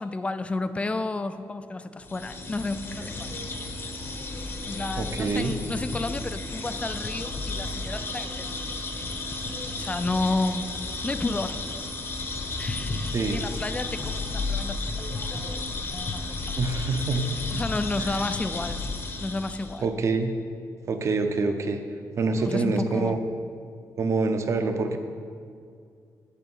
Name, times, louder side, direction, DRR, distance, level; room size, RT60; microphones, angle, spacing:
voice 1, 0.0-3.4 4.7-8.8 9.8-10.7 11.0-11.6 12.6-16.6 17.5-18.8 19.2-19.9 22.4-23.2, left 2 dB, 20° left, 11 dB, 0.4 m, -32 dB
sound 1, 2.0-19.8, left 3 dB, 35° left, 0.8 m, -33 dB
voice 2, 5.0-5.5 13.0-13.4 16.5-17.3 19.8-20.3 20.9-21.8 22.2-23.2 24.0-25.0, right 3 dB, 45° right, 7 dB, 0.7 m, -26 dB
8.3 x 7.7 x 5.5 m, 2.3 s
wide cardioid pair, 145°, 7 cm